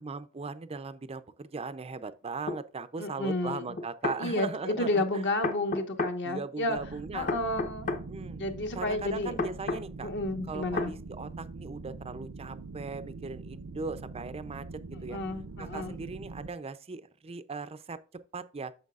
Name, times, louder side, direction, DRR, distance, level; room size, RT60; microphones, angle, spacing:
voice 1, 0.0-5.2 6.2-7.3 8.1-8.4 8.7-10.1 10.5-14.7 15.0-15.2 15.6-18.0 18.3-18.7, right 4 dB, 25° right, 0.5 m, -38 dB
sound 1, 2.5-2.6 3.8-4.2 5.4-6.2 7.3-8.0 9.4-9.8 10.8-10.9, left 3 dB, 40° left, 0.9 m, -31 dB
voice 2, 3.0-3.6 4.2-6.8 7.1-7.9 8.4-9.3 10.0-10.9 15.1-16.0, left 2 dB, 55° left, 1.3 m, -31 dB
sound 2, 6.7-16.5, right 3 dB, 80° right, 0.7 m, -43 dB
9.3 x 7.0 x 2.4 m
head